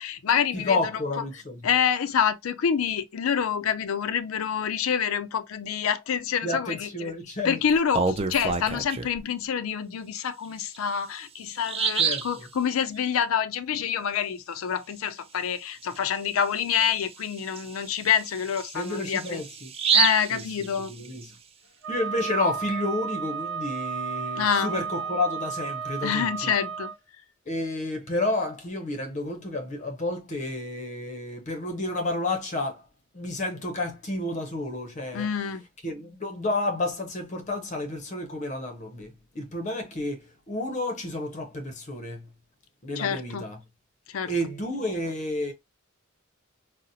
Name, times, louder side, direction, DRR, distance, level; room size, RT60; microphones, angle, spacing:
voice 1, 0.0-0.8 1.6-7.1 7.4-19.4 19.9-20.9 24.4-24.8 26.0-26.9 35.1-35.6 43.0-43.5 44.1-44.3, left 7 dB, 80° left, 0.4 m, -27 dB
voice 2, 0.5-1.7 6.4-7.6 11.9-12.4 18.7-19.7 20.3-20.4 20.9-21.3 21.9-26.5 27.5-32.8 33.1-35.3 35.8-42.3 42.8-43.6 44.3-45.5, left 2 dB, 35° left, 0.6 m, -30 dB
Bird vocalization bird call bird song, 7.7-9.2 10.7-10.8 11.2-11.3 11.6-12.4 15.8-16.0 16.4-16.5 17.0-21.2, right 6 dB, 30° right, 0.4 m, -28 dB
Wind instrument woodwind instrument, 21.8-27.0, right 6 dB, 65° right, 0.7 m, -33 dB
4.0 x 2.0 x 2.6 m
head